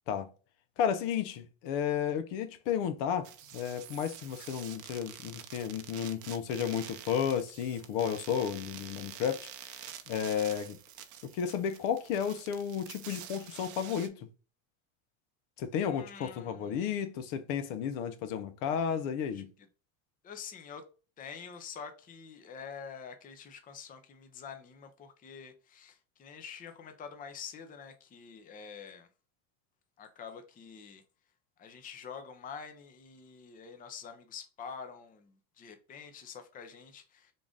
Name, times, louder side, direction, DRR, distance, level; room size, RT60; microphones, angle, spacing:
voice 1, 0.8-3.3 3.5-10.8 11.2-14.3 15.6-19.5, left 8 dB, 70° left, 0.7 m, -33 dB
sound 1, 3.2-14.1, right 10 dB, 45° right, 0.6 m, -48 dB
voice 2, 15.8-16.9 19.3-19.7 20.2-20.9 21.2-29.1 30.0-31.0 31.6-37.3, left 6 dB, 20° left, 0.5 m, -47 dB
3.8 x 2.5 x 3.5 m
supercardioid pair, 120°, 43 cm